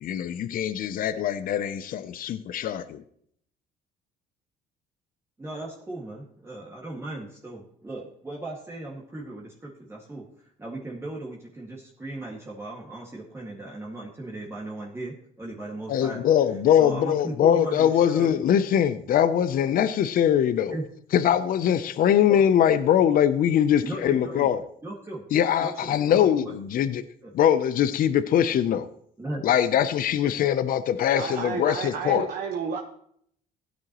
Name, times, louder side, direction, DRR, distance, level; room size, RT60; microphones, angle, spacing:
voice 1, 0.0-3.0 15.9-20.8 21.1-24.6 25.3-27.0 27.3-28.9 29.4-32.3, left 9 dB, 55° left, 0.7 m, -22 dB
voice 2, 5.4-16.2 16.8-18.3 20.7-20.8 22.3-22.4 23.8-24.5 24.8-25.3 25.6-26.6 27.2-27.3 29.2-29.5, right 2 dB, 15° right, 2.0 m, -37 dB
voice 3, 31.1-32.8, right 6 dB, 65° right, 1.4 m, -31 dB
16.0 x 9.6 x 3.1 m
cardioid pair, 110°, 17 cm